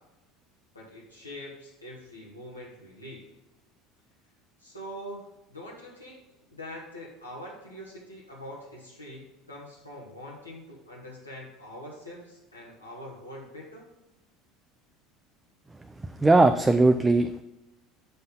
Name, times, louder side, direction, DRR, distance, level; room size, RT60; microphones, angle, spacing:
voice 1, 0.7-3.3 4.6-5.2 5.5-6.2 6.5-13.9, equal, 85° left, -4 dB, 1.4 m, -43 dB
voice 2, 16.2-17.4, right 2 dB, 15° right, 7 dB, 0.4 m, -19 dB
6.9 x 5.4 x 5.4 m, 0.95 s
figure-of-eight pair, 70°, 0 cm